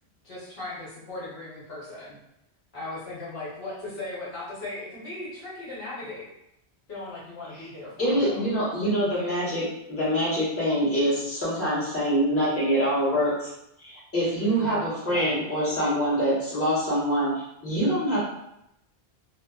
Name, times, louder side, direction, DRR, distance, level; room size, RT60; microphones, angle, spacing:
voice 1, 0.2-2.2 2.7-6.3 6.9-8.4 14.3-14.8 15.1-15.3, left 2 dB, 65° left, -8 dB, 1.0 m, -38 dB
voice 2, 8.0-13.5 13.8-18.2, equal, 15° left, -11 dB, 1.1 m, -25 dB
2.4 x 2.3 x 2.3 m, 0.82 s
omnidirectional pair, 1.1 m